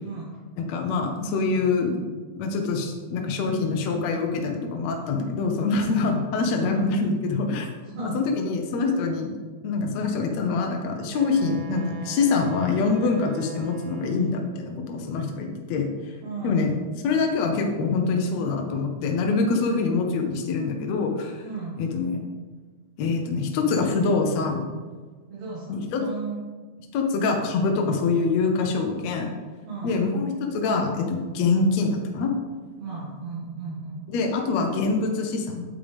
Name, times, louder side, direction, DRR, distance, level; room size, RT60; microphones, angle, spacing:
voice 1, 0.6-2.0 2.4-7.7 8.1-9.3 9.6-15.9 16.4-16.7 17.0-21.5 21.8-22.2 23.0-24.7 25.7-26.0 26.9-29.3 29.8-32.3 34.1-35.7, left 4 dB, 70° left, 2 dB, 1.9 m, -25 dB
voice 2, 7.8-8.2 16.2-16.7 21.4-21.8 25.3-26.4 29.6-30.0 32.8-34.0, right 4 dB, 70° right, -8 dB, 3.3 m, -35 dB
Wind instrument woodwind instrument, 11.1-14.6, right 3 dB, 45° right, 2.1 m, -43 dB
9.0 x 8.5 x 3.5 m, 1.4 s
omnidirectional pair, 3.5 m